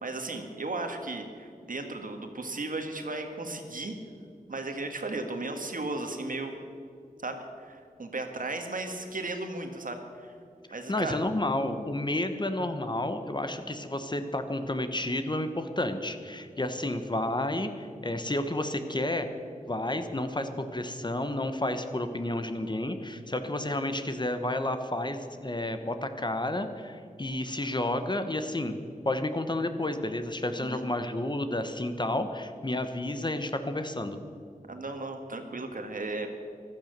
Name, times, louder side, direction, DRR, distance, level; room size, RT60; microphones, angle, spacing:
voice 1, 0.0-4.0 4.5-6.5 7.2-10.4 10.7-11.2 30.6-30.8 34.7-36.3, right 2 dB, 65° right, 5 dB, 1.8 m, -35 dB
voice 2, 10.9-19.3 19.7-28.8 29.0-34.2, left 1 dB, 30° left, 8 dB, 1.1 m, -31 dB
15.0 x 12.5 x 6.7 m, 2.4 s
wide cardioid pair, 80°, 15 cm